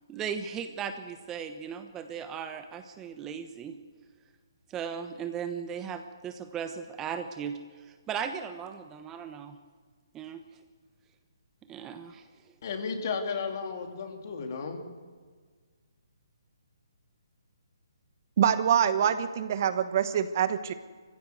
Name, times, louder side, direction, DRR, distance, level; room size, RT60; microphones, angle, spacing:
voice 1, 0.1-3.8 4.7-9.6 10.1-10.4 11.7-12.3, right 7 dB, 15° right, 8 dB, 1.0 m, -37 dB
voice 2, 12.6-14.8, left 5 dB, 50° left, 4 dB, 3.2 m, -33 dB
voice 3, 18.4-20.7, right 9 dB, 45° right, 12 dB, 1.1 m, -25 dB
23.0 x 15.5 x 8.0 m, 1.5 s
figure-of-eight pair, 140°, 2 cm